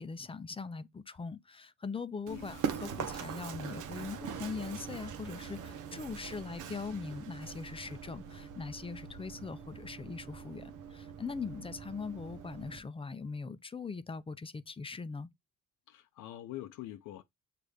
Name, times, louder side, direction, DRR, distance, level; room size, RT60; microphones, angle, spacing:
voice 1, 0.0-15.3, left 4 dB, 20° left, 0.4 m, -41 dB
voice 2, 2.3-2.7 15.9-17.2, left 14 dB, 85° left, 0.6 m, -45 dB
Run, 2.3-12.8, right 7 dB, 85° right, 0.7 m, -42 dB
6.4 x 2.5 x 3.3 m
cardioid pair, 90°, 30 cm